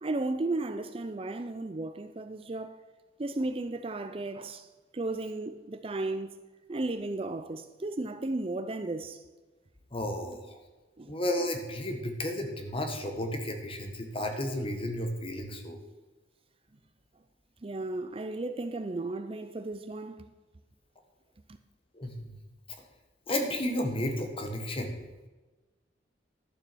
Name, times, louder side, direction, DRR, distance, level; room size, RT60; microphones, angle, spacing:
voice 1, 0.0-2.8 3.2-4.7 4.9-6.4 6.7-9.2 11.0-11.1 17.6-20.3, right 2 dB, 30° right, 0.5 m, -34 dB
voice 2, 9.9-10.6 11.1-15.8 21.9-22.3 23.3-25.0, left 1 dB, 30° left, 1.6 m, -32 dB
11.5 x 7.2 x 6.2 m
head